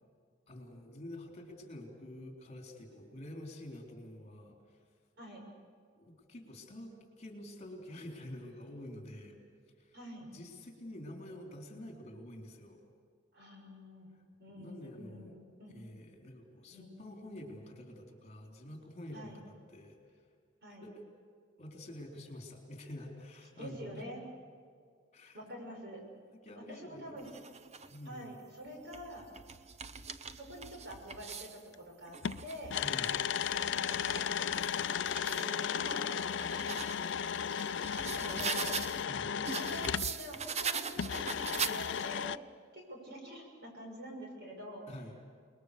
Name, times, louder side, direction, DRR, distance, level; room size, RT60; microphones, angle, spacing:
voice 1, 0.5-4.8 6.0-9.4 9.8-12.8 14.6-15.4 15.7-20.0 20.8-21.1 21.6-24.0 25.1-25.4 26.3-27.2 27.9-28.3 32.8-33.2 39.0-39.3 44.9-45.2, left 1 dB, 35° left, 2 dB, 3.9 m, -48 dB
voice 2, 9.9-10.3 13.3-14.1 14.4-15.8 16.7-17.0 19.1-19.4 20.6-20.8 23.5-24.2 25.3-26.1 26.5-27.3 28.0-29.3 30.3-32.8 33.4-37.3 37.9-38.7 39.3-41.4 41.6-42.4 42.7-44.9, equal, 60° right, 1 dB, 6.6 m, -47 dB
sound 1, 27.2-28.0 28.7-31.6 32.1-35.5 36.0-39.0 39.4-42.2, right 6 dB, 35° right, 0.8 m, -41 dB
sound 2, 31.7-31.8 32.2-40.2 41.0-42.4, left 8 dB, 65° left, 0.5 m, -35 dB
28.5 x 21.0 x 6.8 m, 2.1 s
head